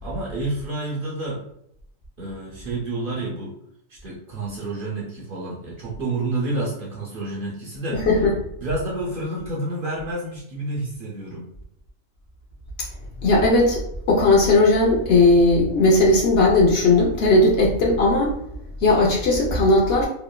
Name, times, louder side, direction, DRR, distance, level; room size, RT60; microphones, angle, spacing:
voice 1, 0.0-1.4 2.2-3.5 3.9-8.0 8.6-11.5, right 2 dB, 55° right, -5 dB, 0.6 m, -29 dB
voice 2, 7.9-8.3 13.2-13.8 14.1-18.3 18.8-20.1, left 2 dB, 60° left, -2 dB, 0.7 m, -17 dB
2.9 x 2.1 x 2.2 m, 0.74 s
omnidirectional pair, 1.3 m